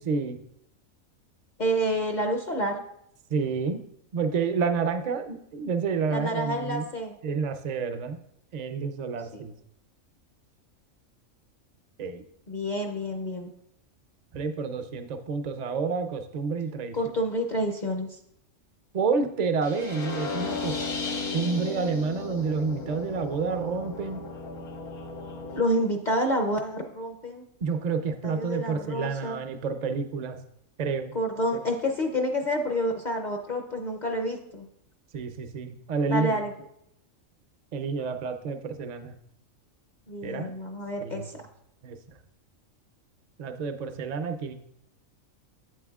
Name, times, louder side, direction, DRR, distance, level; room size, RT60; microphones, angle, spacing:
voice 1, 0.1-0.4 3.3-3.8 4.1-6.9 7.2-8.2 8.5-9.5 12.0-12.2 14.3-17.0 18.9-20.8 21.3-24.3 27.6-30.4 30.8-31.1 35.1-36.4 37.7-39.1 40.2-40.6 41.0-41.3 41.8-42.0 43.4-44.5, right 5 dB, 50° right, 8 dB, 0.5 m, -29 dB
voice 2, 1.6-2.8 6.1-7.2 9.3-9.4 12.5-13.5 16.9-18.2 25.5-27.4 28.2-29.4 31.1-34.7 36.1-36.5 40.1-41.3, equal, 45° left, 3 dB, 0.6 m, -28 dB
sound 1, 19.6-25.6, left 3 dB, 70° left, 1.5 m, -35 dB
8.4 x 7.6 x 2.4 m, 0.75 s
omnidirectional pair, 1.4 m